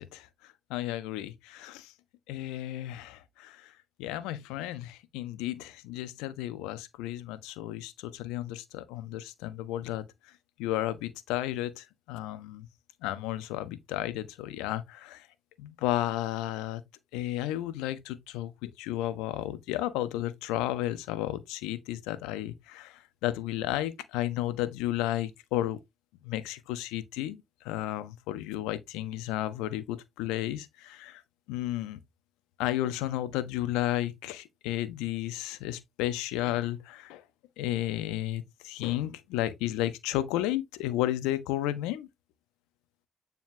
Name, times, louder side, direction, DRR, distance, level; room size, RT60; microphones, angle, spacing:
voice 1, 0.0-1.9 2.3-3.7 4.0-10.0 10.6-12.7 13.0-15.3 15.6-16.8 17.1-25.8 26.2-31.2 31.5-32.0 32.6-37.2 37.6-42.1, left 14 dB, 80° left, 1.2 m, -33 dB
9.3 x 5.6 x 2.9 m
hypercardioid pair, 45°, 0 cm